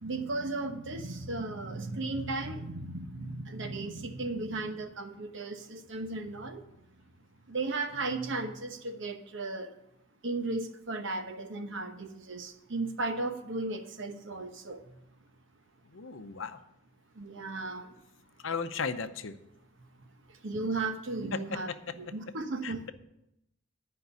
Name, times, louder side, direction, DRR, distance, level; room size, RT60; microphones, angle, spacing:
voice 1, 0.0-6.6 7.5-9.7 10.2-14.8 17.2-17.9 20.4-21.7 22.0-22.9, right 3 dB, 65° right, 7 dB, 1.1 m, -35 dB
voice 2, 15.9-16.6 18.4-19.4 21.3-22.0 22.6-22.7, left 5 dB, 65° left, 10 dB, 0.7 m, -35 dB
10.5 x 5.3 x 8.2 m, 0.85 s
head